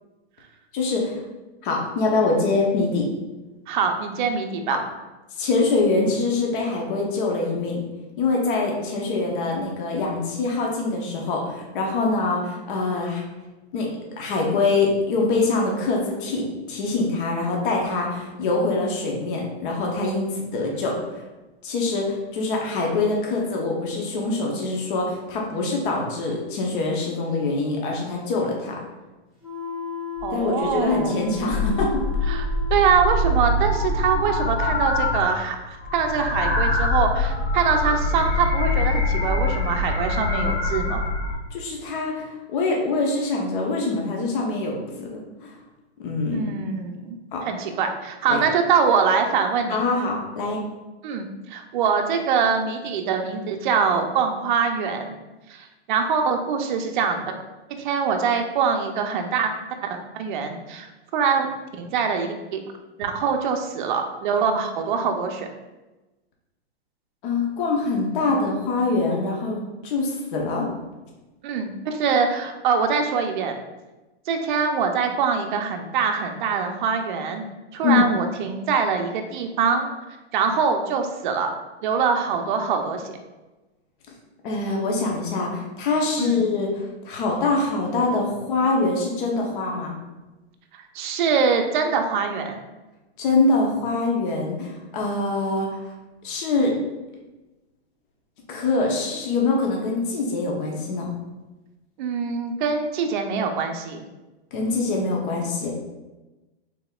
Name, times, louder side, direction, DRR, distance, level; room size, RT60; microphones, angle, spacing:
voice 1, 0.7-1.2 1.6-3.1 4.7-4.8 5.4-7.8 8.2-13.2 13.7-13.9 14.2-21.0 21.6-28.7 30.3-32.0 41.5-45.5 46.0-46.5 47.3-47.4 48.3-48.4 49.7-50.6 67.2-70.7 77.8-78.1 84.4-89.9 93.2-95.8 96.2-96.8 98.5-101.1 104.5-105.7, left 3 dB, 50° left, -1 dB, 0.9 m, -24 dB
voice 2, 3.7-4.8 30.2-31.3 32.3-41.1 46.3-47.2 47.5-49.8 51.0-55.2 55.5-57.3 57.7-59.5 59.8-61.5 61.7-62.6 63.0-65.5 71.4-73.5 74.3-77.5 77.7-79.9 80.3-81.5 81.8-83.2 86.2-86.4 90.7-92.6 102.0-104.0, right 6 dB, 45° right, 5 dB, 0.5 m, -24 dB
sound 1, 29.4-33.7, left 6 dB, ahead, 1.3 m, -35 dB
sound 2, 30.2-30.3 30.7-31.0 31.3-35.4 35.7-41.4, left 2 dB, 85° left, 1.2 m, -24 dB
4.0 x 3.5 x 2.3 m, 1.1 s
hypercardioid pair, 150°, 33 cm